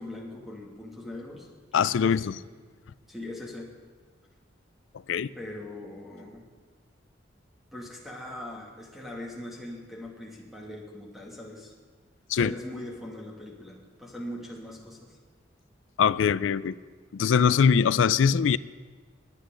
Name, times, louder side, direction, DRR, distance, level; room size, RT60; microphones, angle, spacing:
voice 1, 0.0-1.5 2.0-2.4 3.1-3.7 5.4-6.5 7.7-11.7 12.3-15.2, left 1 dB, ahead, 2.3 m, -41 dB
voice 2, 1.7-2.4 5.1-5.3 12.3-12.5 16.0-16.7 17.1-18.6, left 6 dB, 85° left, 0.4 m, -22 dB
21.0 x 10.0 x 3.8 m
head